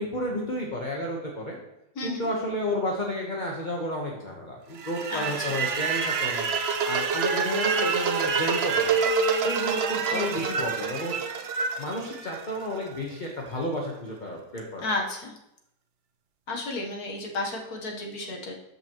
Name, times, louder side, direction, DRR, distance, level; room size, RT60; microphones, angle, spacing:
voice 1, 0.0-1.6 2.0-6.5 6.8-9.0 9.4-11.1 11.8-14.9, left 1 dB, 30° left, -1 dB, 1.1 m, -31 dB
voice 2, 1.9-2.3 5.1-5.6 10.1-10.5 14.8-15.4 16.5-18.5, left 2 dB, 65° left, 0 dB, 1.7 m, -33 dB
sound 1, 4.8-12.9, right 5 dB, 60° right, 0.7 m, -27 dB
12.5 x 5.6 x 3.0 m, 0.83 s
omnidirectional pair, 1.7 m